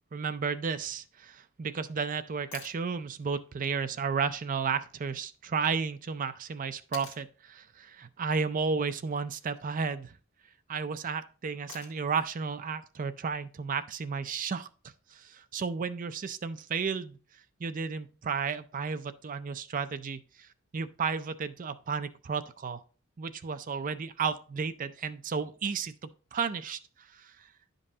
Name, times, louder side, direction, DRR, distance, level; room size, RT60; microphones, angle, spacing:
voice 1, 0.1-10.1 10.7-14.7 15.1-17.2 17.6-20.5 20.7-22.8 23.2-27.5, right 5 dB, 40° right, 0.4 m, -33 dB
sound 1, 2.5-2.8 5.1-5.2 6.9-7.3 9.3-9.7 11.7-12.2 14.3-14.4, left 7 dB, 80° left, 1.4 m, -47 dB
11.0 x 5.3 x 2.8 m
head